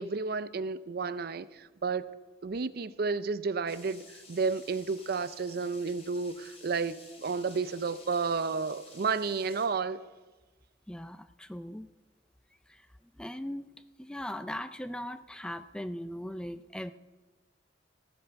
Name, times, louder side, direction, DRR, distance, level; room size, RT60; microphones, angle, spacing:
voice 1, 0.0-2.1 2.4-10.0, right 4 dB, 55° right, 15 dB, 0.5 m, -32 dB
sound 1, 3.7-9.7, left 3 dB, 35° left, 3.1 m, -53 dB
voice 2, 10.9-11.9 12.7-12.9 13.2-13.7 14.0-16.9, left 1 dB, 5° left, 11 dB, 0.3 m, -39 dB
15.5 x 8.6 x 5.7 m, 1.2 s
head